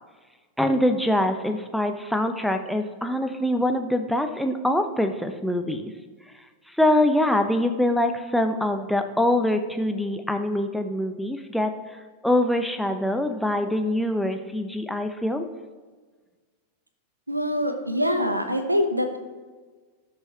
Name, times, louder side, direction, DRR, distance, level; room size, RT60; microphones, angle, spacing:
voice 1, 0.6-5.9 6.8-12.0 12.2-15.5, left 1 dB, ahead, 5 dB, 0.7 m, -24 dB
voice 2, 17.3-19.2, equal, 85° right, 7 dB, 0.9 m, -24 dB
17.0 x 6.4 x 2.9 m, 1.4 s
figure-of-eight pair, 90°, 0 cm